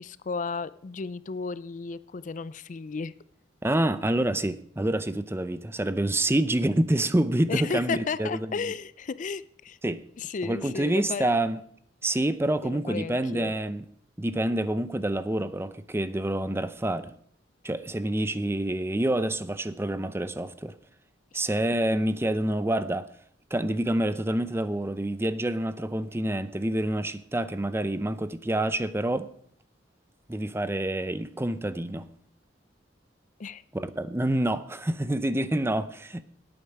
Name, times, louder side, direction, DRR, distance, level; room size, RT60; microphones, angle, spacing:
voice 1, 0.0-3.1 7.5-9.8 10.2-11.3 12.6-13.5 33.4-33.6, left 5 dB, 45° left, 0.4 m, -33 dB
voice 2, 3.6-8.5 9.8-10.0 10.4-11.6 12.0-13.8 14.2-17.1 17.6-20.7 21.3-23.1 23.5-29.3 30.3-32.1 33.7-36.2, right 1 dB, 15° right, 0.6 m, -27 dB
18.0 x 8.9 x 4.8 m
head